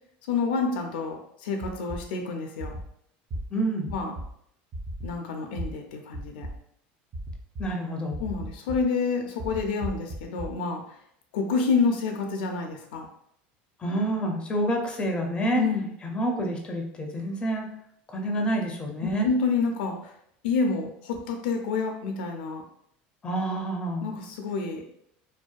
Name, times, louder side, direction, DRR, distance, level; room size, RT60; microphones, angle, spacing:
voice 1, 0.3-2.7 3.9-4.1 5.0-6.5 8.2-10.8 11.3-13.1 15.5-15.9 19.0-20.1 20.4-22.6 24.0-24.8, left 4 dB, 90° left, 3 dB, 0.4 m, -28 dB
sound 1, 1.6-2.0 2.6-2.8 3.3-3.4 3.9-4.2 4.7-5.1 5.6-5.7 6.1-6.5 7.1-7.6 8.1-8.8 9.4-10.5, right 1 dB, 35° right, 0.5 m, -34 dB
voice 2, 3.5-3.9 7.6-8.2 13.8-15.6 16.0-17.7 18.1-19.3 23.2-24.1, right 1 dB, 20° left, 2 dB, 0.5 m, -28 dB
2.6 x 2.2 x 2.3 m, 0.71 s
supercardioid pair, 120°, 5 cm